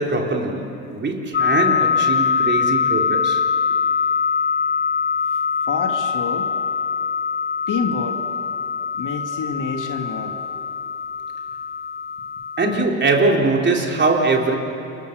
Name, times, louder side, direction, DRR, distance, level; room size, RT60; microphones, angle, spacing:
voice 1, 0.0-3.4 12.6-14.6, right 3 dB, 25° right, 1 dB, 3.7 m, -21 dB
sound 1, 1.3-12.8, left 6 dB, 25° left, 0.6 m, -23 dB
voice 2, 5.7-6.5 7.7-8.2 8.9-10.3, left 5 dB, 45° left, 3 dB, 2.8 m, -27 dB
29.5 x 23.5 x 6.8 m, 2.8 s
hypercardioid pair, 80°, 45 cm